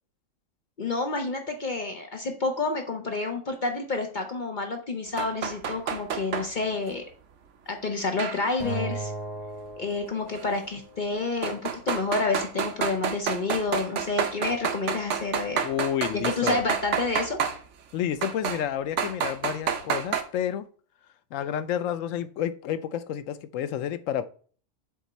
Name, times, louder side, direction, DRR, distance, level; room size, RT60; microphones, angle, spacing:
voice 1, 0.8-7.0 7.7-9.1 9.8-15.6 16.1-17.4, left 3 dB, 45° left, 0.8 m, -29 dB
sound 1, 5.2-6.5 8.2-8.8 10.4-10.5 11.4-17.6 18.2-18.6 19.0-20.2, right 7 dB, 70° right, 1.1 m, -29 dB
Acoustic guitar, 8.6-11.0, right 2 dB, 30° right, 3.6 m, -36 dB
voice 2, 15.6-16.6 17.9-20.7 21.3-24.3, left 10 dB, 80° left, 1.0 m, -30 dB
7.5 x 3.6 x 4.1 m
omnidirectional pair, 1.3 m